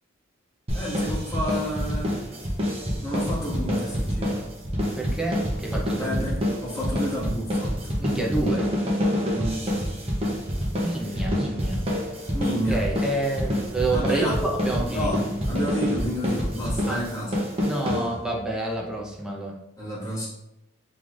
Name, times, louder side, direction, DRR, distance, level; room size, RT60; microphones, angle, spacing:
voice 1, 0.7-2.2 3.0-4.4 6.0-7.7 9.3-9.7 11.0-11.2 12.3-12.8 13.9-14.4 14.9-17.3 19.8-20.3, equal, 15° left, -8 dB, 1.6 m, -30 dB
sound 1, 0.7-18.5, equal, 30° right, 0.9 m, -27 dB
voice 2, 4.9-6.2 8.0-8.7 10.8-11.8 12.7-15.1 16.9-17.0 17.6-19.5, right 2 dB, 5° right, -2 dB, 0.6 m, -28 dB
5.4 x 3.2 x 2.5 m, 0.86 s
head